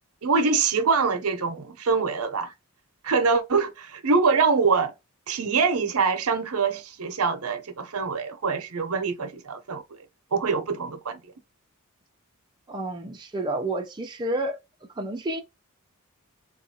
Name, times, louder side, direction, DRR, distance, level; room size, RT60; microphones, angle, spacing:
voice 1, 0.2-2.5 3.0-4.9 5.3-9.8 10.3-11.2, right 5 dB, 75° right, 0.7 m, -24 dB
voice 2, 12.7-14.6 14.9-15.4, right 1 dB, 20° right, 0.5 m, -30 dB
3.8 x 2.4 x 2.8 m
head